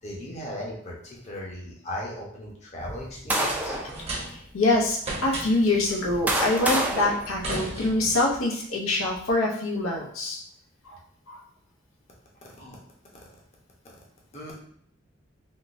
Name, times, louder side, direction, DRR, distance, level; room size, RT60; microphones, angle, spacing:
voice 1, 0.0-3.8 12.6-12.8 14.3-14.5, left 1 dB, 35° left, -3 dB, 0.8 m, -37 dB
sound 1, 2.8-4.0 4.7-4.8 5.7-8.1, right 1 dB, 10° right, 0.3 m, -28 dB
sound 2, 3.7-4.6 5.0-5.8 6.9-8.3, right 2 dB, 30° right, 0.7 m, -35 dB
voice 2, 4.3-10.4 10.9-11.0 11.3-11.4, left 2 dB, 85° left, -2 dB, 0.7 m, -25 dB
3.6 x 2.6 x 2.5 m, 0.64 s
head